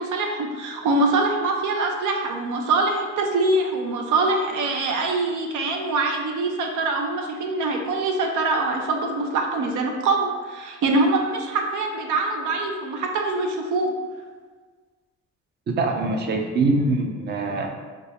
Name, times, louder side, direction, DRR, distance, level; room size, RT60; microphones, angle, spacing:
voice 1, 0.0-13.9, right 2 dB, 80° right, 2 dB, 0.6 m, -24 dB
voice 2, 15.8-17.8, right 2 dB, 35° right, 2 dB, 0.5 m, -23 dB
3.5 x 2.9 x 2.9 m, 1.4 s
cardioid pair, 90°, 30 cm